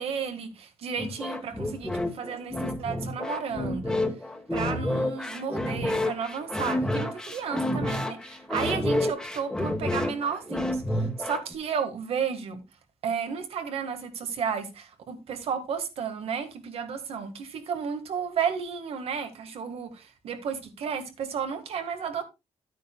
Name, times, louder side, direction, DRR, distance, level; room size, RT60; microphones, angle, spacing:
voice 1, 0.0-4.0 4.5-12.6 13.0-22.2, right 6 dB, 65° right, 1.6 m, -33 dB
sound 1, 1.0-11.5, left 1 dB, 5° left, 1.2 m, -29 dB
12.0 x 9.2 x 2.2 m
cardioid pair, 155°, 11 cm